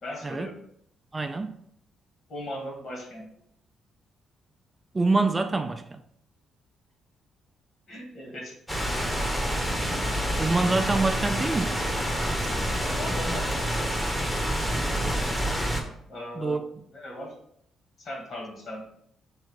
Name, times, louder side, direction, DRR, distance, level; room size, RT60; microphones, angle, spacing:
voice 1, 0.0-0.6 2.3-3.3 7.9-8.5 12.8-13.7 16.1-16.6 16.9-17.3 18.0-18.8, left 1 dB, 55° left, 1.6 m, -38 dB
voice 2, 1.1-1.6 4.9-6.0 10.4-11.8 16.4-16.6, right 3 dB, 25° right, 0.3 m, -25 dB
sound 1, 8.7-15.8, equal, 10° left, 0.8 m, -27 dB
3.6 x 2.9 x 4.5 m
cardioid pair, 90°, 0 cm